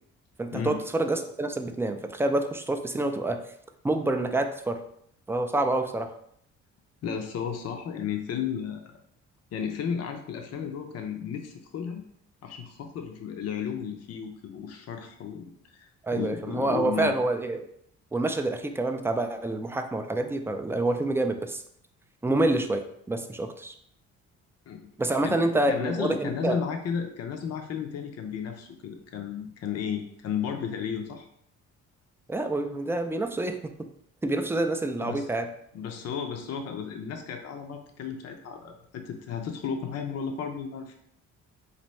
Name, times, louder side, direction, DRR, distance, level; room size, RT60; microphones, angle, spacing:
voice 1, 0.4-3.4 3.8-4.8 5.3-6.1 16.0-17.6 18.1-21.6 22.2-23.7 25.0-26.6 32.3-33.7 34.2-35.5, right 2 dB, 10° right, 6 dB, 0.3 m, -27 dB
voice 2, 7.0-8.9 9.5-12.0 12.4-15.5 15.7-17.1 24.7-24.9 25.2-25.4 25.7-31.3 35.0-35.3 35.7-41.0, left 7 dB, 55° left, 4 dB, 0.6 m, -33 dB
4.1 x 2.6 x 3.1 m, 0.69 s
cardioid pair, 90°, 30 cm